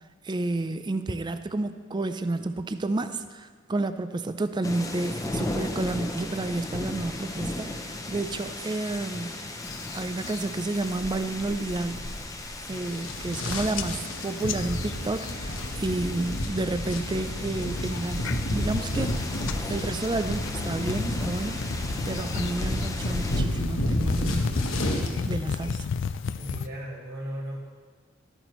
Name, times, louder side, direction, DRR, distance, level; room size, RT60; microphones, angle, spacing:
voice 1, 0.2-9.4 9.9-12.0 12.6-21.6 22.1-24.6 25.3-25.9, right 2 dB, 20° right, 10 dB, 0.4 m, -30 dB
sound 1, 4.6-23.4, left 2 dB, 15° left, 0.7 m, -37 dB
sound 2, 9.6-10.4 10.8-11.2 11.6-12.0 12.4-12.5 12.7-13.4 13.7-16.3 16.6-17.1 17.6-26.7, left 6 dB, 60° left, 0.4 m, -35 dB
sound 3, 12.8-25.1, left 1 dB, 85° left, 1.1 m, -31 dB
voice 2, 26.4-27.7, equal, 50° right, -4 dB, 2.0 m, -37 dB
13.0 x 9.0 x 3.1 m, 1.5 s
head